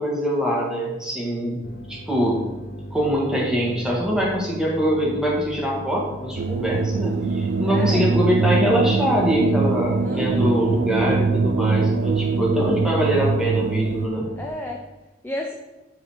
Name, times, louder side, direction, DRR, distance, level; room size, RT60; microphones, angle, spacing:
voice 1, 0.0-1.6 1.9-2.4 2.9-14.3, equal, 5° right, -4 dB, 1.8 m, -23 dB
sound 1, 1.6-14.5, equal, 50° left, 0.9 m, -37 dB
sound 2, 6.4-14.1, right 4 dB, 70° right, 0.4 m, -23 dB
voice 2, 7.7-8.1 10.0-10.5 14.4-14.8 15.2-15.5, left 1 dB, 10° left, 0 dB, 0.6 m, -32 dB
11.0 x 4.1 x 4.6 m, 1.1 s
head